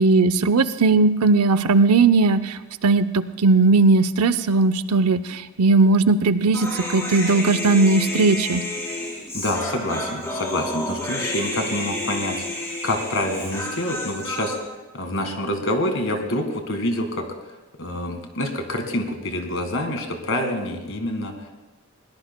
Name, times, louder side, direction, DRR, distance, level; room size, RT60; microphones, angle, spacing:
voice 1, 0.0-8.6, right 3 dB, 90° right, 14 dB, 0.6 m, -18 dB
Human voice, 6.5-14.5, left 1 dB, 15° left, 3.0 m, -30 dB
voice 2, 9.3-14.6 14.9-17.3 17.8-21.5, left 1 dB, 60° left, 5 dB, 1.7 m, -27 dB
21.0 x 18.0 x 2.2 m, 1.1 s
head